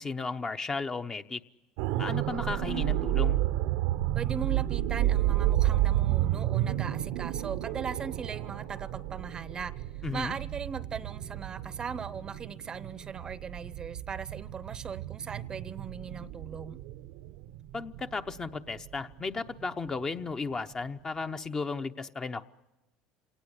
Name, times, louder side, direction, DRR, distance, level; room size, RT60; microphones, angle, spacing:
voice 1, 0.0-1.4 2.0-3.4 10.0-10.3 17.7-22.5, left 4 dB, 25° left, 0.9 m, -34 dB
sound 1, 1.8-19.6 20.0-20.2, right 14 dB, 80° right, 0.8 m, -31 dB
voice 2, 4.1-9.8 10.1-16.8, right 6 dB, 30° right, 0.7 m, -39 dB
27.5 x 18.5 x 8.2 m
supercardioid pair, 100°, 3 cm